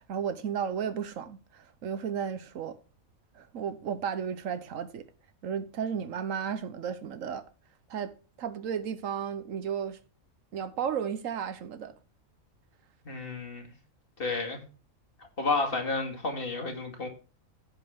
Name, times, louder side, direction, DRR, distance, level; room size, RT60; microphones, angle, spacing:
voice 1, 0.1-2.8 3.4-5.0 5.4-7.4 7.9-8.1 8.4-10.0 10.5-11.9, right 7 dB, 70° right, 1.3 m, -33 dB
voice 2, 13.1-13.6 14.2-14.6 15.4-17.1, left 3 dB, 40° left, 2.2 m, -31 dB
15.5 x 5.3 x 3.6 m
omnidirectional pair, 1.4 m